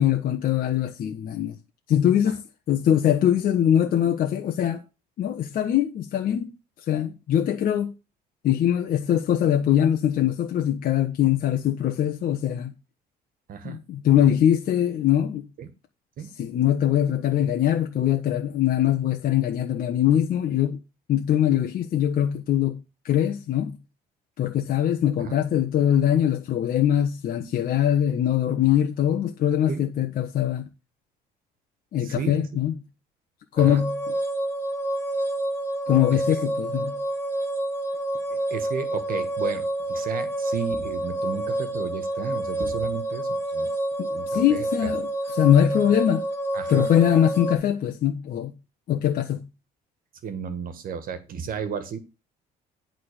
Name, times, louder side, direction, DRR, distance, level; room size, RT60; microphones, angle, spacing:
voice 1, 0.0-1.6 1.9-2.4 2.7-4.8 5.2-6.5 6.9-7.9 8.4-12.7 13.6-15.5 16.4-20.8 21.1-22.8 23.0-23.8 24.4-30.7 31.9-32.7 33.5-33.9 35.9-37.0 44.0-46.2 46.7-48.5 48.9-49.5, left 10 dB, 55° left, 1.3 m, -22 dB
voice 2, 32.0-32.4 33.6-33.8 36.3-36.4 38.3-43.7 44.1-44.9 46.5-46.9 50.2-52.0, right 7 dB, 55° right, 1.6 m, -33 dB
sound 1, 33.6-47.6, right 1 dB, 15° left, 2.5 m, -28 dB
11.0 x 3.9 x 6.6 m
cardioid pair, 110°, 17 cm